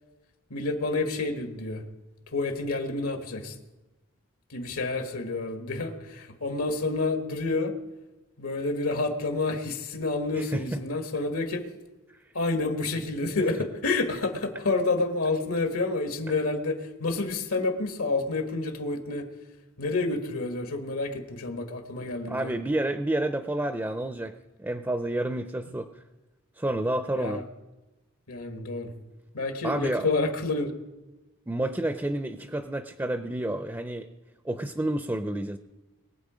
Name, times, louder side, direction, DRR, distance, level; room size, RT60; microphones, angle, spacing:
voice 1, 0.5-1.8 2.3-3.6 4.5-7.7 8.4-11.6 12.3-19.3 19.8-22.5 27.1-27.4 28.3-28.9 29.3-30.7, left 3 dB, 80° left, 6 dB, 1.5 m, -29 dB
voice 2, 10.3-10.8 22.0-25.9 26.6-27.4 29.6-30.1 31.5-34.1 34.4-35.6, right 1 dB, 10° right, 9 dB, 0.4 m, -30 dB
22.0 x 7.9 x 5.0 m, 1.1 s
head